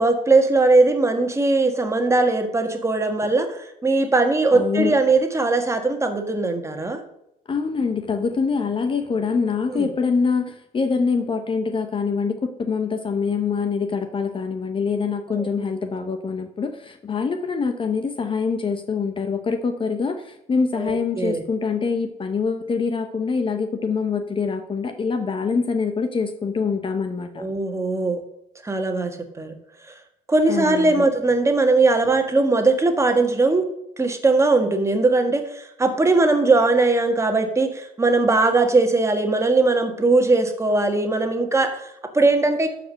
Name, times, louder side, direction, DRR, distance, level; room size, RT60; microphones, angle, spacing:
voice 1, 0.0-7.0 9.7-9.9 15.3-15.5 20.8-21.4 27.4-28.2 28.6-29.6 29.9-30.0 30.3-33.6 34.0-42.7, right 3 dB, 15° right, 5 dB, 1.6 m, -20 dB
voice 2, 4.5-4.9 7.5-27.4 30.5-31.1, left 5 dB, 30° left, 7 dB, 0.8 m, -24 dB
12.5 x 5.1 x 6.5 m, 0.81 s
cardioid pair, 110°, 17 cm